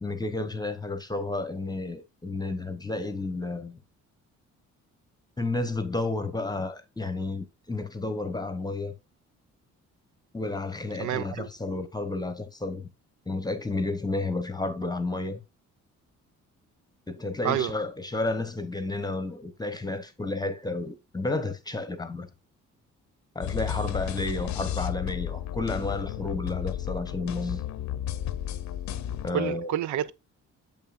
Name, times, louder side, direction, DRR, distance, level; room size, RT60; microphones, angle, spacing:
voice 1, 0.0-3.8 5.4-8.9 10.3-12.9 13.3-15.4 17.1-22.3 23.3-27.6 29.2-29.7, left 2 dB, 15° left, 0.9 m, -31 dB
voice 2, 11.0-11.5 17.4-17.7 29.3-30.1, right 11 dB, 75° right, 0.5 m, -28 dB
sound 1, 23.4-29.3, left 10 dB, 70° left, 0.7 m, -33 dB
7.1 x 5.7 x 2.5 m
cardioid pair, 90°, 30 cm